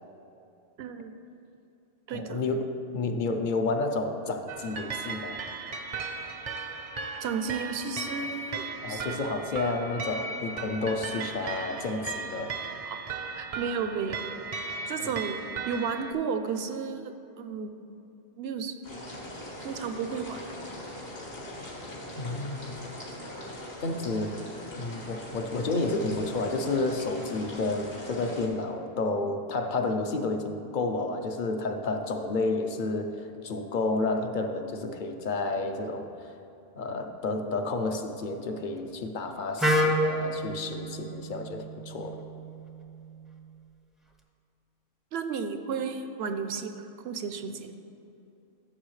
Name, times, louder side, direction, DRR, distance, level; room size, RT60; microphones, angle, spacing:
voice 1, 0.8-1.1 2.1-2.4 7.2-9.2 12.9-13.0 13.4-14.3 14.9-15.4 15.7-17.7 18.4-18.7 19.6-20.4 45.1-47.7, right 6 dB, 75° right, 8 dB, 0.9 m, -33 dB
voice 2, 2.1-5.4 8.8-12.6 15.0-15.1 22.2-22.8 23.8-24.4 24.8-36.3 36.8-42.2, left 3 dB, 55° left, 6 dB, 0.8 m, -31 dB
sound 1, 4.5-16.1, right 4 dB, 45° right, 0.5 m, -36 dB
sound 2, 18.8-28.5, left 1 dB, 70° left, 2.3 m, -41 dB
Wind instrument woodwind instrument, 39.6-43.5, equal, ahead, 0.5 m, -30 dB
14.0 x 6.9 x 3.2 m, 2.8 s
omnidirectional pair, 1.1 m